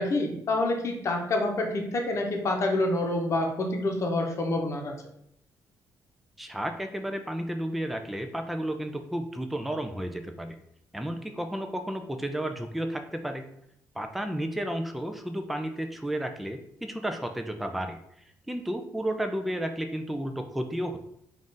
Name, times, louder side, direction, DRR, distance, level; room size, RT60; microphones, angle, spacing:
voice 1, 0.0-4.9, left 2 dB, 45° left, 2 dB, 0.8 m, -27 dB
voice 2, 6.4-10.6 10.9-13.4 14.0-18.0 18.5-21.0, right 1 dB, ahead, 6 dB, 0.3 m, -32 dB
3.7 x 2.5 x 3.8 m, 0.73 s
cardioid pair, 120°, 7 cm